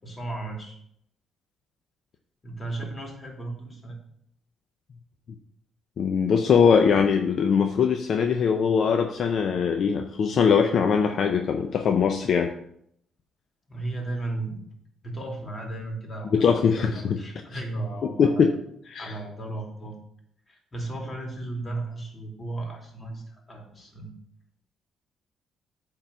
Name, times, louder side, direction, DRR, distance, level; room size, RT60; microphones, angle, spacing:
voice 1, 0.0-0.8 2.4-4.0 13.7-14.6 15.0-16.5 16.8-18.5 19.0-20.0 20.5-24.1, right 2 dB, 30° left, 1 dB, 2.7 m, -35 dB
voice 2, 6.0-12.5 16.3-17.2 18.2-18.6 18.9-19.1, left 6 dB, 60° left, 5 dB, 0.6 m, -21 dB
8.8 x 3.8 x 6.8 m, 0.71 s
cardioid pair, 90°, 0 cm